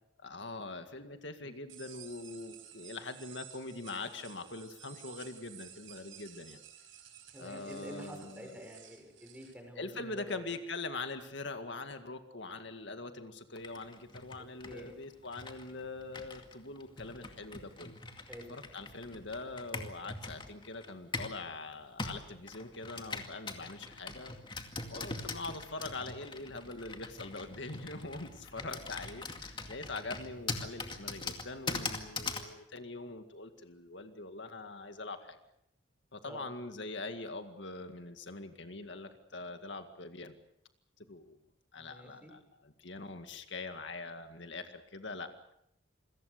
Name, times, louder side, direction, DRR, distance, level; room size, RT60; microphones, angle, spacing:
voice 1, 0.2-6.6 7.4-8.5 9.8-18.0 18.5-24.4 24.9-35.4 36.1-40.3 41.1-41.4 41.7-45.3, left 3 dB, 60° left, 7 dB, 2.0 m, -43 dB
sound 1, 1.7-9.5, right 10 dB, 85° right, 5.0 m, -53 dB
voice 2, 7.3-10.6 14.4-14.9 18.3-18.5 24.9-25.2 28.6-28.8 36.2-36.5 41.8-42.3, equal, 5° right, 3 dB, 5.8 m, -48 dB
Computer keyboard, 13.6-21.4 22.0-32.5, left 3 dB, 25° left, 2.2 m, -42 dB
28.0 x 22.5 x 6.7 m, 0.76 s
head